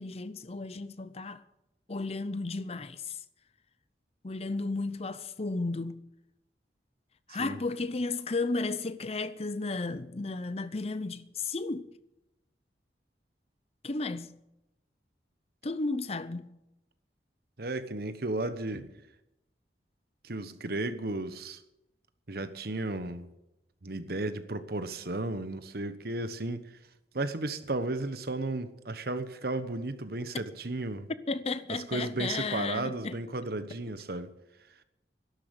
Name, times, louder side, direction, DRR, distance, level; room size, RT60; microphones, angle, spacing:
voice 1, 0.0-1.4 1.9-3.2 4.2-6.1 7.3-11.9 13.8-14.4 15.6-16.5 31.3-33.2, left 3 dB, 35° left, 0.6 m, -33 dB
voice 2, 17.6-18.9 20.2-21.6 22.3-23.3 23.8-26.6 27.1-31.1 31.7-34.3, right 2 dB, 55° right, 1.1 m, -34 dB
12.5 x 12.0 x 8.1 m
head